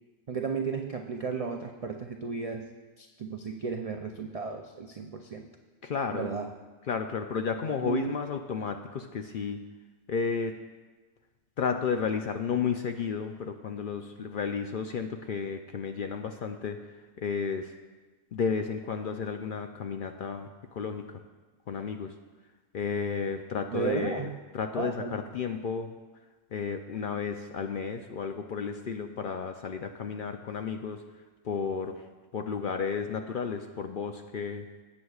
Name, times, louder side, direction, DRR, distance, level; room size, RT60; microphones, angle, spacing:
voice 1, 0.3-2.7 3.0-5.5 6.1-6.5 7.8-8.2 23.7-24.4 24.8-25.2, right 5 dB, 60° right, 3 dB, 0.3 m, -34 dB
voice 2, 5.8-6.3 6.9-9.6 10.1-10.6 11.6-17.7 18.3-21.2 21.7-22.1 22.7-26.0 26.5-31.0 31.4-32.0 32.3-34.7, left 6 dB, 60° left, 5 dB, 0.5 m, -32 dB
17.5 x 7.9 x 2.4 m, 1.3 s
omnidirectional pair, 1.3 m